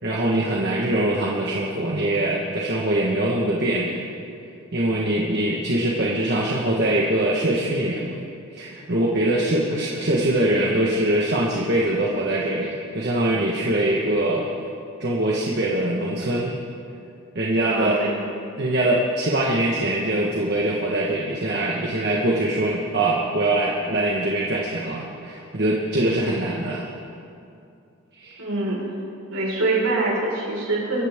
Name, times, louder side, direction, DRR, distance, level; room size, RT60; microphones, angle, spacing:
voice 1, 0.0-4.0 4.7-8.1 8.5-14.5 15.0-16.5 17.3-18.0 18.6-26.9 28.1-28.4, right 1 dB, 50° right, -3 dB, 1.4 m, -23 dB
voice 2, 17.7-18.1 28.4-28.8 29.3-31.0, right 2 dB, 70° right, -4 dB, 4.9 m, -24 dB
24.0 x 14.5 x 3.7 m, 2.5 s
head